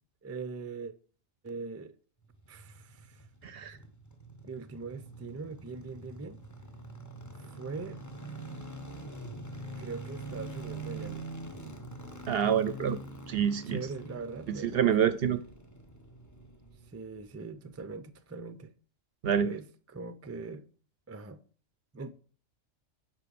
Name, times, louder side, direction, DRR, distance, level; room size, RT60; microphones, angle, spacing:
voice 1, 0.2-0.9 1.4-2.0 2.5-3.2 4.4-6.4 7.5-8.0 9.8-11.3 13.7-15.1 16.9-18.7 19.4-20.6 21.1-21.4 21.9-22.1, right 4 dB, 20° right, 0.3 m, -41 dB
sound 1, 2.2-17.5 17.7-17.8, right 2 dB, 15° left, 0.9 m, -45 dB
voice 2, 3.4-3.8 12.3-13.0 13.3-13.8 14.5-15.4 19.2-19.5, right 8 dB, 60° right, 0.7 m, -27 dB
10.0 x 3.7 x 6.9 m
omnidirectional pair, 1.3 m